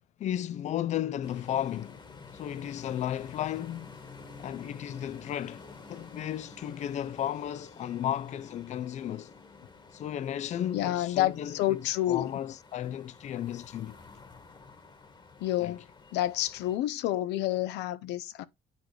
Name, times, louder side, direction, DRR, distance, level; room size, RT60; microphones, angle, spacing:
voice 1, 0.2-2.0 2.3-4.0 4.4-9.3 9.9-14.0 15.6-15.8, left 11 dB, 45° left, 0.4 m, -34 dB
sound 1, 1.2-16.8, left 4 dB, 25° left, 1.4 m, -50 dB
voice 2, 10.7-12.3 15.4-15.9 16.1-18.4, left 14 dB, 85° left, 0.7 m, -29 dB
9.2 x 4.6 x 3.2 m
cardioid pair, 110°, 17 cm